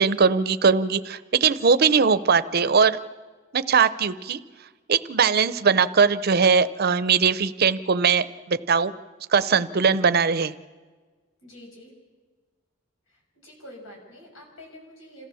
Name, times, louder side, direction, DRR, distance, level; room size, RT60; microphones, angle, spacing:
voice 1, 0.0-3.0 3.5-4.4 4.9-8.9 9.3-10.5, right 5 dB, 50° right, 14 dB, 0.6 m, -20 dB
voice 2, 11.4-11.9 13.1-15.3, left 1 dB, 85° left, 0 dB, 6.8 m, -46 dB
27.5 x 15.0 x 7.0 m, 1.4 s
head